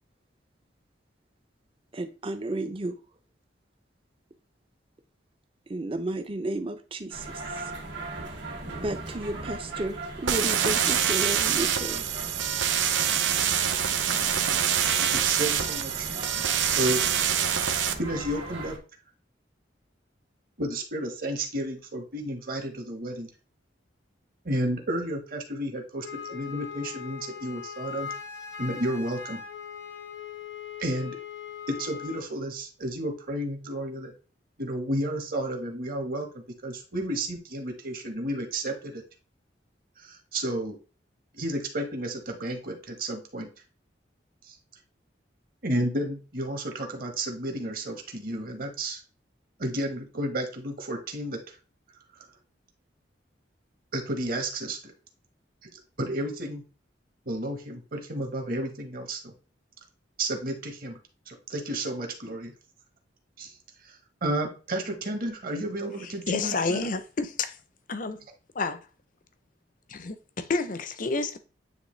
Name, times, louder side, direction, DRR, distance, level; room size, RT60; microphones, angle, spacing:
voice 1, 1.9-3.0 5.7-7.7 8.4-8.5 8.8-12.0, right 1 dB, 30° right, 0.6 m, -33 dB
sound 1, 7.1-18.8, right 2 dB, 70° right, 2.0 m, -38 dB
sound 2, 10.3-17.9, right 9 dB, 90° right, 0.6 m, -25 dB
voice 2, 15.0-16.1 16.7-17.1 17.6-18.8 20.6-23.3 24.4-28.1 28.6-29.4 30.8-31.2 31.7-34.1 34.6-39.0 40.0-40.8 41.3-43.5 44.4-44.6 45.6-49.0 49.6-51.6 52.2-52.3 53.9-54.9 55.6-55.7 56.0-56.6 57.2-59.3 60.2-61.0 61.3-62.5 63.4-63.5 63.8-66.9, right 1 dB, 50° right, 1.4 m, -32 dB
Wind instrument woodwind instrument, 26.0-32.3, left 7 dB, 80° left, 1.1 m, -40 dB
voice 3, 66.3-67.6 67.9-68.2 68.5-68.8 69.9-71.4, left 3 dB, 45° left, 0.6 m, -29 dB
9.4 x 3.1 x 3.2 m
head